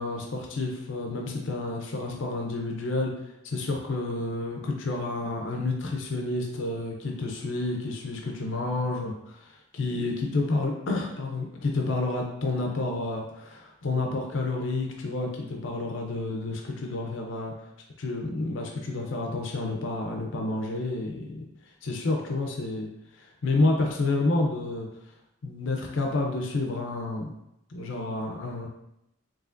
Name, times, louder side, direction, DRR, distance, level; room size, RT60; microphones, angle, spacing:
voice 1, 0.0-3.1 3.4-17.5 18.0-21.4 21.8-22.9 23.2-24.9 25.4-27.3 27.7-28.7, left 2 dB, 70° left, 1 dB, 0.6 m, -29 dB
4.8 x 3.0 x 2.5 m, 0.84 s
head